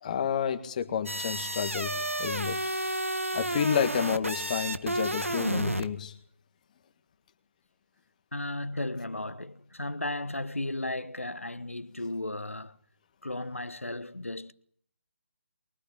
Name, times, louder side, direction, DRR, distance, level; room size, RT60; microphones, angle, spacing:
voice 1, 0.0-2.6 3.3-6.1, left 8 dB, 35° left, 1.7 m, -30 dB
sound 1, 1.1-5.9, right 1 dB, 90° right, 1.7 m, -31 dB
voice 2, 8.3-12.8 13.2-14.5, left 2 dB, 85° left, 1.2 m, -35 dB
23.0 x 23.0 x 8.9 m
figure-of-eight pair, 145°, 7 cm